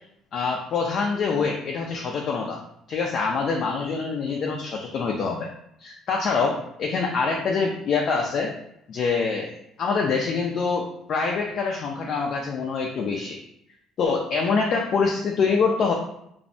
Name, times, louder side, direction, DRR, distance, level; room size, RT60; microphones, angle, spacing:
voice 1, 0.3-2.6 2.9-5.5 5.8-8.5 8.9-9.5 9.8-13.4 14.0-15.9, left 4 dB, 60° left, 0 dB, 0.3 m, -25 dB
2.5 x 2.1 x 2.6 m, 0.77 s
supercardioid pair, 80°, 0 cm